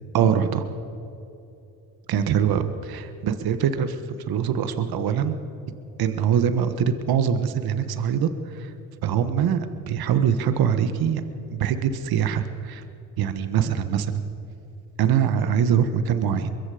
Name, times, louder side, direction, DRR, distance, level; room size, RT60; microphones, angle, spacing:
voice 1, 0.1-0.7 2.1-5.4 6.0-8.7 9.0-11.2 11.5-12.8 13.2-14.3 15.0-16.5, right 8 dB, 65° right, 10 dB, 1.5 m, -23 dB
23.5 x 22.5 x 5.1 m, 2.8 s
supercardioid pair, 80°, 40 cm